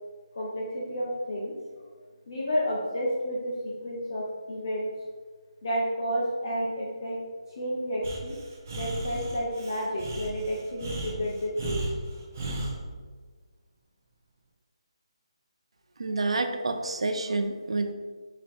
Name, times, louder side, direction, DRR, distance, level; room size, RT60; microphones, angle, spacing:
voice 1, 0.3-1.5 2.3-4.9 5.6-7.2 7.5-8.4 8.7-11.9, equal, 40° left, -4 dB, 0.7 m, -31 dB
Breathing, 8.0-12.8, right 2 dB, 25° right, 0.5 m, -35 dB
voice 2, 16.0-17.9, right 3 dB, 75° right, 6 dB, 0.5 m, -28 dB
5.1 x 2.9 x 3.5 m, 1.4 s
hypercardioid pair, 175°, 3 cm